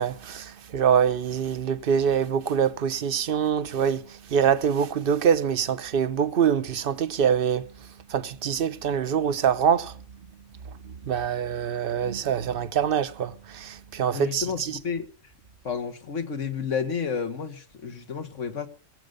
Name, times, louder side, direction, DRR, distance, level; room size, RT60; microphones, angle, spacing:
voice 1, 0.0-10.0 10.8-14.8, right 8 dB, 50° right, 0.9 m, -25 dB
voice 2, 14.1-15.1 15.6-18.7, left 6 dB, 70° left, 1.8 m, -31 dB
22.5 x 7.8 x 5.2 m
omnidirectional pair, 1.3 m